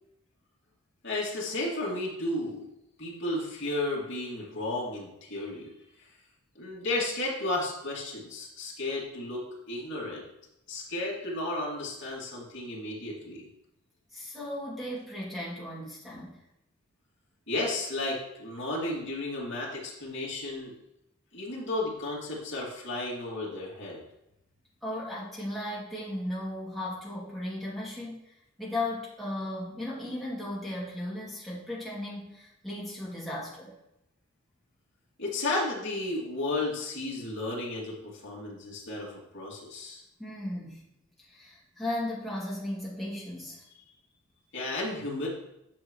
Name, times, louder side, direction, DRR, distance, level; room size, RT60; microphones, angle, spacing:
voice 1, 1.0-2.7 3.0-5.7 6.5-10.2 10.7-13.5 17.5-20.7 21.3-24.0 35.2-40.0 44.5-45.3, left 2 dB, 55° left, -5 dB, 2.6 m, -33 dB
voice 2, 14.1-16.4 24.8-28.3 28.6-33.8 40.2-40.9 41.2-43.6, left 1 dB, ahead, -7 dB, 2.5 m, -36 dB
10.0 x 6.9 x 3.2 m, 0.86 s
head